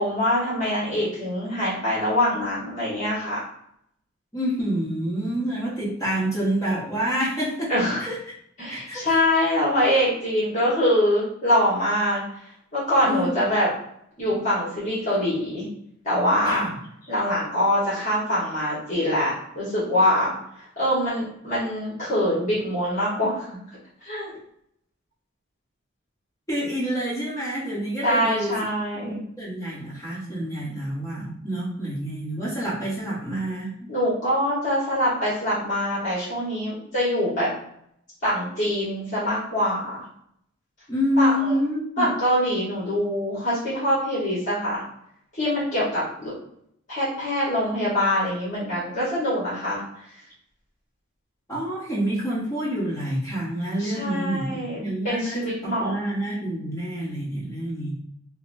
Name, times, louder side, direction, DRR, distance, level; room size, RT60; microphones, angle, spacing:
voice 1, 0.0-3.4 7.7-8.0 8.6-12.2 12.7-13.7 14.2-15.7 16.0-16.7 17.1-20.4 20.8-23.5 24.0-24.3 28.0-29.2 33.9-37.5 38.2-40.0 41.2-41.5 42.0-44.8 45.3-46.3 46.9-49.8 53.8-55.9, left 1 dB, 40° left, -8 dB, 1.3 m, -24 dB
voice 2, 4.3-7.7 8.0-8.2 8.7-9.2 13.0-13.5 16.5-16.7 26.5-28.7 29.0-33.9 40.9-42.1 51.5-57.9, equal, 15° left, -6 dB, 1.2 m, -27 dB
5.2 x 2.1 x 2.6 m, 0.71 s
head